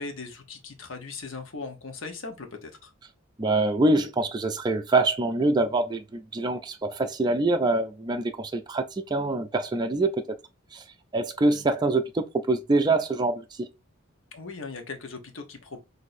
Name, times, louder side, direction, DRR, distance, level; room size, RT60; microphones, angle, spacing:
voice 1, 0.0-2.9 14.3-15.8, left 4 dB, 70° left, 0.9 m, -39 dB
voice 2, 3.4-8.8 9.1-10.2 10.7-10.8 11.1-13.4, right 2 dB, 20° right, 0.4 m, -24 dB
5.9 x 2.6 x 2.6 m
head